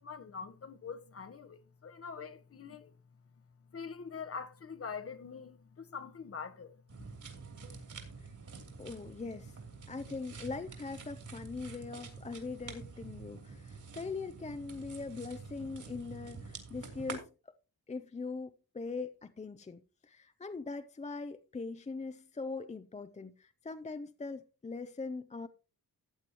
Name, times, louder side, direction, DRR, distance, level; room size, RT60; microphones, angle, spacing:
voice 1, 0.0-3.0 3.7-7.0, left 5 dB, 40° left, 1.0 m, -44 dB
sound 1, 6.9-17.2, right 4 dB, 55° right, 3.0 m, -47 dB
voice 2, 8.8-9.6 9.9-17.6 17.9-25.5, left 4 dB, 20° left, 0.5 m, -41 dB
14.5 x 9.2 x 2.9 m
wide cardioid pair, 145°, 36 cm